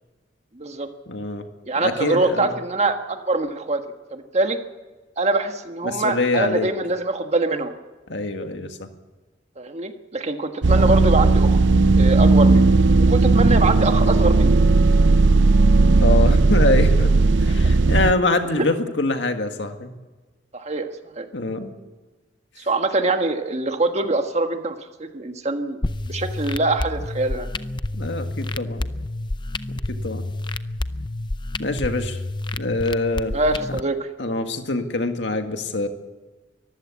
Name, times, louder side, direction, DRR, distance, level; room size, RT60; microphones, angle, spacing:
voice 1, 0.5-0.9 1.6-3.8 4.1-4.6 5.2-7.7 9.6-11.6 12.0-12.7 13.0-14.6 18.6-18.7 20.5-20.9 21.1-21.3 22.6-25.8 26.0-27.5 33.3-34.1, right 2 dB, 35° right, 6 dB, 1.5 m, -24 dB
voice 2, 1.1-1.4 1.8-2.5 5.8-6.7 8.1-8.9 13.5-13.7 16.0-17.1 17.4-19.9 21.3-21.7 27.9-28.9 30.0-30.2 31.6-32.2 32.6-33.4 34.2-35.9, left 2 dB, 70° left, 6 dB, 2.0 m, -24 dB
sound 1, 10.6-18.1, right 3 dB, 75° right, 0.6 m, -16 dB
sound 2, 25.8-33.8, left 2 dB, 25° left, 0.6 m, -29 dB
23.5 x 15.0 x 8.5 m, 1.2 s
head